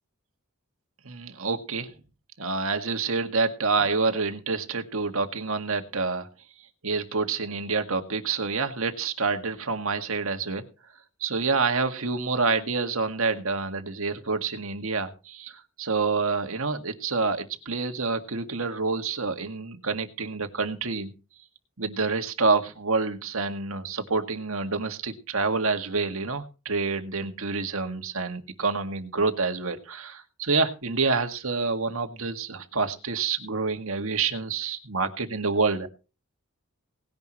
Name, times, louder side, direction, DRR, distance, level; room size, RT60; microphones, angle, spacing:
voice 1, 1.1-1.9 2.4-6.3 6.8-10.6 11.2-21.1 21.8-35.9, right 4 dB, 70° right, 6 dB, 2.0 m, -27 dB
19.0 x 10.5 x 3.1 m, 0.33 s
head